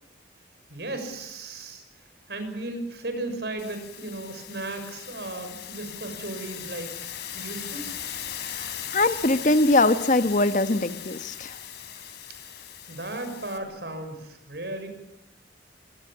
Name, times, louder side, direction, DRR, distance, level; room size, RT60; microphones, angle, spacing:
voice 1, 0.7-1.8 2.3-6.9 7.3-7.9 12.9-14.9, right 2 dB, 65° right, 7 dB, 6.0 m, -35 dB
sound 1, 3.6-13.6, left 10 dB, 65° left, 3.5 m, -38 dB
voice 2, 8.5-11.5, left 2 dB, 45° left, 11 dB, 1.1 m, -22 dB
24.5 x 19.5 x 8.8 m, 0.85 s
head